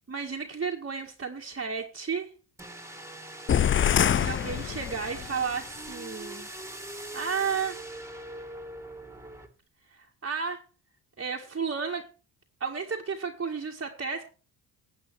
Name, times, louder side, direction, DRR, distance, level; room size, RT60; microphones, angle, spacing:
voice 1, 0.1-2.3 4.1-6.5 7.1-7.8 9.9-10.6 11.2-12.1 12.6-14.3, right 5 dB, 30° right, 0 dB, 1.9 m, -32 dB
sound 1, 2.6-9.5, right 1 dB, 5° right, 2.4 m, -42 dB
sound 2, 3.5-5.3, left 9 dB, 30° left, 0.5 m, -25 dB
14.0 x 8.3 x 4.8 m, 0.37 s
supercardioid pair, 65°, 41 cm